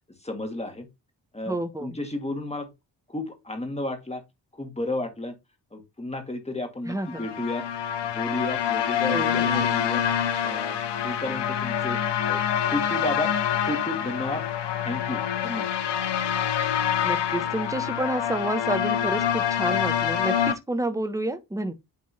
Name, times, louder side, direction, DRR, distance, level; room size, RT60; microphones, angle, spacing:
voice 1, 0.2-0.9 1.3-2.7 3.1-4.2 4.5-5.3 5.7-7.7 8.1-10.0 10.4-10.8 11.0-12.0 12.3-13.3 13.6-14.4 14.8-15.8, left 1 dB, 15° left, 1.9 m, -32 dB
voice 2, 1.5-2.0 6.9-7.2 9.1-9.5 17.0-21.7, right 1 dB, 10° right, 1.0 m, -29 dB
sound 1, 7.0-20.5, left 9 dB, 85° left, 0.8 m, -26 dB
9.7 x 3.4 x 2.8 m
cardioid pair, 75°, 40 cm